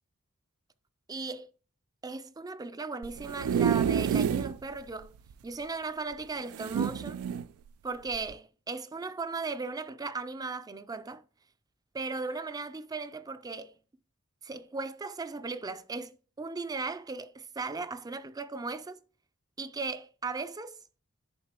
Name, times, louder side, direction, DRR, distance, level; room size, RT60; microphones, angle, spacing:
voice 1, 1.1-1.5 2.0-5.2 5.4-7.2 7.8-11.2 11.9-13.8 14.4-19.0 19.6-20.8, right 3 dB, 20° right, 0.4 m, -37 dB
sound 1, 3.0-4.6 5.0-5.1 5.3-5.4 6.5-7.5 8.1-8.3, right 8 dB, 90° right, 0.3 m, -28 dB
10.5 x 3.7 x 2.9 m
head